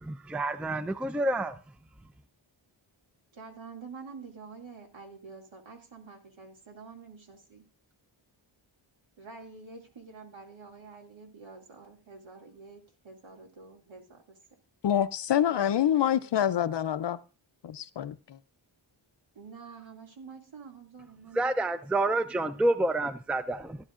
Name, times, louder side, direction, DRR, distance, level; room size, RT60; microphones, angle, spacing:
voice 1, 0.0-1.6 21.4-23.8, right 2 dB, 5° right, 0.4 m, -28 dB
voice 2, 3.3-7.7 9.2-14.4 15.5-16.3 19.3-21.7, right 4 dB, 65° right, 2.5 m, -48 dB
voice 3, 14.8-17.2 17.6-18.4, left 10 dB, 60° left, 0.6 m, -26 dB
15.5 x 11.0 x 2.5 m
wide cardioid pair, 95°, 49 cm